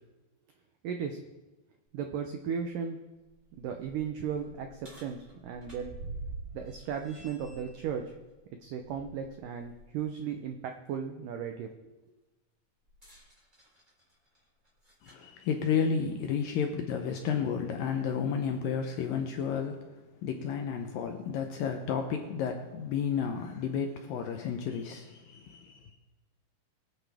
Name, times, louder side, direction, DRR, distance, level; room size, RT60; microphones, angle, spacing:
voice 1, 0.8-1.2 1.9-3.0 3.6-5.9 6.5-8.1 8.6-11.9, right 7 dB, 85° right, 5 dB, 1.8 m, -36 dB
sound 1, 1.9-2.0 2.5-2.6 3.1-9.9 10.3-10.4 12.9-15.3 16.3-16.4 17.2-17.3, right 3 dB, 10° right, 3.4 m, -47 dB
voice 2, 15.0-19.9 20.2-25.9, left 7 dB, 75° left, 4 dB, 2.1 m, -32 dB
23.0 x 9.3 x 3.5 m, 1.2 s
omnidirectional pair, 4.9 m